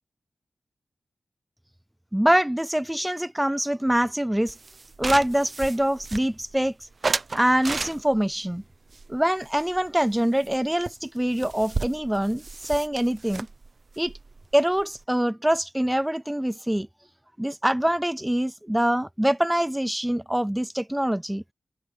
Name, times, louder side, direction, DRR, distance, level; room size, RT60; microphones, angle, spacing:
voice 1, 2.1-4.5 5.0-6.7 7.3-8.6 9.1-13.5 14.0-14.1 14.5-16.9 17.4-21.4, right 1 dB, 5° right, 0.3 m, -24 dB
sound 1, 4.5-6.6 7.0-8.3 8.9-10.2 10.4-10.6 10.9-11.0 11.2-15.0, right 3 dB, 45° right, 0.8 m, -33 dB
wide cardioid pair, 115°, 0 cm